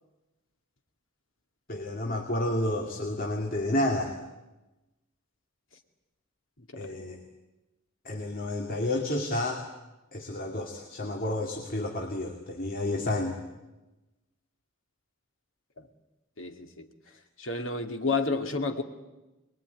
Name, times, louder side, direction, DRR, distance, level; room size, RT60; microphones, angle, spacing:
voice 1, 1.7-4.1 6.8-7.2 8.0-9.6 10.1-13.4, left 1 dB, 45° left, 2 dB, 2.5 m, -30 dB
voice 2, 16.4-16.9 17.4-18.8, left 3 dB, 75° left, 5 dB, 2.3 m, -30 dB
23.5 x 22.0 x 9.6 m, 1.0 s
head